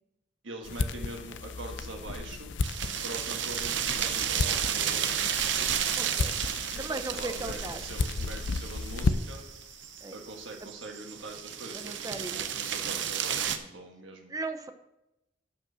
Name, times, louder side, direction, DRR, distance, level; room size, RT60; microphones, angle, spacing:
voice 1, 0.4-2.6 3.0-5.3 6.9-9.4 10.1-14.3, right 2 dB, 85° right, 1 dB, 1.4 m, -43 dB
sound 1, 0.6-9.5, left 4 dB, 70° left, 0.5 m, -34 dB
sound 2, 2.6-13.6, right 9 dB, 70° right, 0.7 m, -32 dB
voice 2, 6.0-6.4 6.7-7.8 10.0-10.1 11.7-12.5 14.3-14.7, right 3 dB, 20° right, 9 dB, 0.6 m, -37 dB
8.9 x 5.2 x 6.2 m, 0.91 s
head